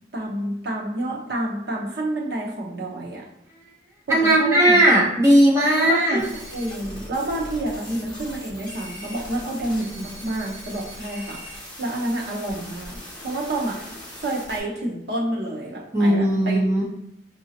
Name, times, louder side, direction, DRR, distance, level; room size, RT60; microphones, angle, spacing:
voice 1, 0.1-3.3 4.1-4.8 5.8-13.0 13.2-13.9 14.2-16.6, right 1 dB, 65° right, -3 dB, 0.9 m, -29 dB
voice 2, 4.1-6.2 15.9-16.8, right 1 dB, 15° right, -5 dB, 0.8 m, -17 dB
sound 1, 6.2-14.6, equal, 20° left, 1.3 m, -39 dB
4.9 x 2.7 x 2.8 m, 0.83 s
head